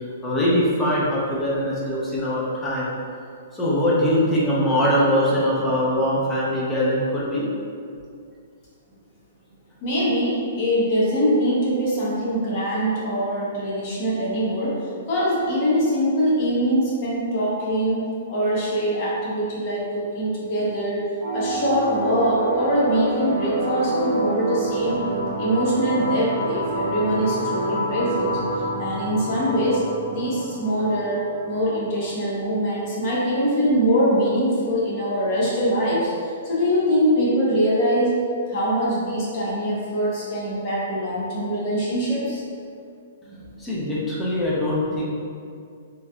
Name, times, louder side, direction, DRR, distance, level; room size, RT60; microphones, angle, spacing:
voice 1, 0.0-2.9 3.5-7.5 43.3-45.0, equal, 10° left, -7 dB, 0.6 m, -22 dB
voice 2, 9.8-21.0 21.3-25.0 25.4-28.4 28.8-29.8 30.1-31.2 31.4-38.1 38.5-42.4, equal, 40° left, -7 dB, 1.0 m, -23 dB
sound 1, 21.2-32.2, right 1 dB, 55° right, 0.9 m, -28 dB
3.1 x 2.6 x 2.3 m, 2.3 s
hypercardioid pair, 155°, 0 cm